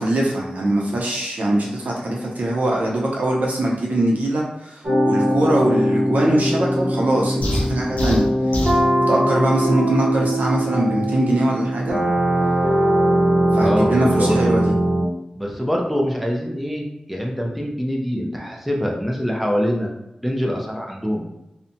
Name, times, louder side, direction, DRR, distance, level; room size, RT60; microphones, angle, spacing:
voice 1, 0.0-8.2 8.5-8.6 9.1-12.0 13.5-14.7, right 1 dB, 80° right, -2 dB, 0.6 m, -22 dB
sound 1, 4.8-15.0, right 1 dB, 45° right, 1.0 m, -20 dB
sound 2, 7.4-8.9, equal, 70° left, 0.5 m, -24 dB
voice 2, 13.5-14.4 15.4-19.9 20.2-21.2, equal, ahead, -1 dB, 0.5 m, -24 dB
2.6 x 2.1 x 2.6 m, 0.88 s
wide cardioid pair, 75°, 3 cm